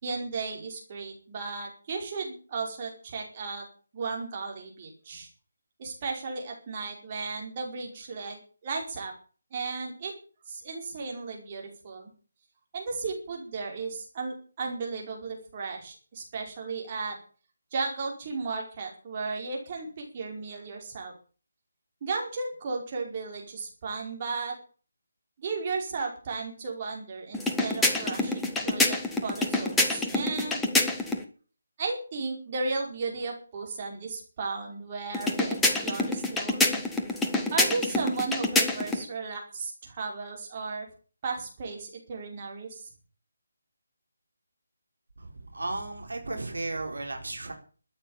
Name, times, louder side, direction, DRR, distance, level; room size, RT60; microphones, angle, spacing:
voice 1, 0.0-3.6 3.9-5.3 5.8-9.1 9.5-10.1 10.5-12.1 12.7-17.2 17.7-21.1 22.0-24.6 25.4-30.6 31.8-36.8 37.5-40.9 41.2-42.9, right 4 dB, 30° right, 0 dB, 5.1 m, -35 dB
sound 1, 27.3-31.2 35.1-39.0, left 2 dB, 5° left, 1.5 m, -27 dB
voice 2, 45.2-47.5, right 2 dB, 70° right, 4 dB, 4.1 m, -34 dB
13.5 x 9.7 x 8.7 m, 0.39 s
figure-of-eight pair, 150°, 0 cm